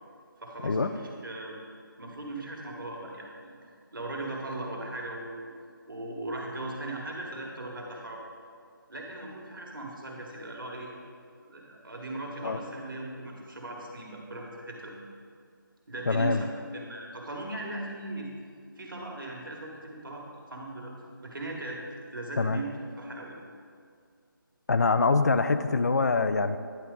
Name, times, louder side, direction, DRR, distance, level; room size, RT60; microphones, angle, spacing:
voice 1, 0.4-1.6 2.0-3.6 3.9-5.5 5.9-8.2 8.9-10.9 11.4-14.9 15.9-16.4 16.7-18.3 18.8-20.9 21.2-21.8 22.1-23.4, right 2 dB, 65° right, -1 dB, 1.6 m, -38 dB
voice 2, 16.1-16.4 22.4-22.6 24.7-26.6, left 4 dB, 50° left, 11 dB, 0.4 m, -24 dB
9.9 x 4.5 x 3.8 m, 2.2 s
figure-of-eight pair, 155°, 12 cm